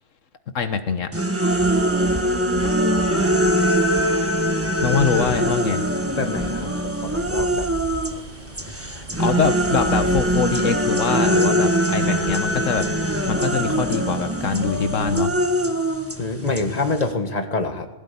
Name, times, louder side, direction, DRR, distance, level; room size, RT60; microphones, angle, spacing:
voice 1, 0.5-1.1 4.8-5.8 9.2-12.9 13.3-15.3, left 6 dB, 85° left, 9 dB, 1.6 m, -23 dB
sound 1, 1.1-8.2 8.5-17.1, right 1 dB, 10° right, 1.6 m, -22 dB
sound 2, 1.5-15.2, right 1 dB, 35° right, 3.5 m, -37 dB
voice 2, 6.2-7.7 16.2-17.9, left 3 dB, 35° left, 6 dB, 1.9 m, -26 dB
20.5 x 16.5 x 8.5 m, 1.0 s
omnidirectional pair, 1.3 m